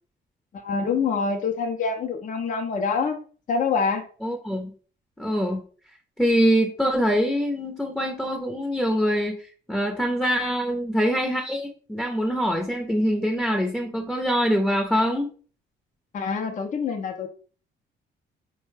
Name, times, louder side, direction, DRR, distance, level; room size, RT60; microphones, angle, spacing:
voice 1, 0.6-3.2 3.5-4.0 16.1-17.3, left 5 dB, 40° left, 4 dB, 0.6 m, -25 dB
voice 2, 4.2-4.7 5.2-5.6 6.2-9.4 9.7-15.3, equal, 5° left, 2 dB, 0.7 m, -24 dB
4.2 x 2.2 x 3.2 m, 0.41 s
cardioid pair, 90°, 20 cm